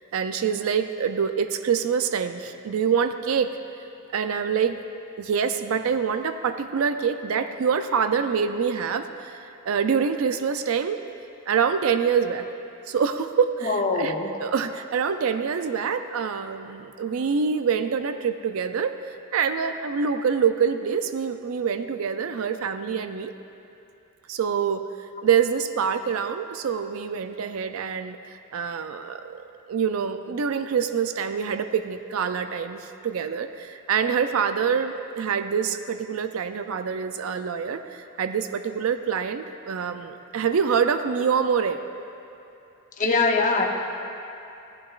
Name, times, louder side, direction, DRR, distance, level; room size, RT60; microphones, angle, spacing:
voice 1, 0.0-3.6 4.1-4.8 5.2-11.0 11.5-12.5 12.9-14.1 14.4-23.3 24.3-24.8 25.2-41.8, right 6 dB, 70° right, 9 dB, 0.4 m, -25 dB
voice 2, 13.6-14.3 43.0-43.6, left 3 dB, 35° left, 0 dB, 0.8 m, -22 dB
15.0 x 11.5 x 2.4 m, 2.8 s
head